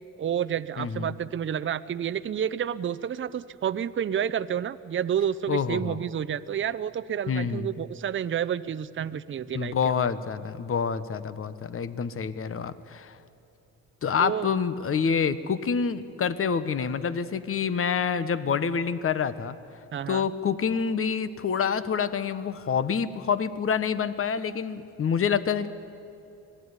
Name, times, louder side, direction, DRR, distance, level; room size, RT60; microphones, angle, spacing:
voice 1, 0.2-10.0 14.2-14.5 19.9-20.3, right 9 dB, 40° right, 13 dB, 0.7 m, -30 dB
voice 2, 0.8-1.1 5.5-6.0 7.3-7.8 9.5-13.2 14.0-19.6 20.1-25.7, left 6 dB, 45° left, 13 dB, 1.3 m, -27 dB
25.5 x 18.0 x 9.8 m, 2.7 s
cardioid pair, 90°, 30 cm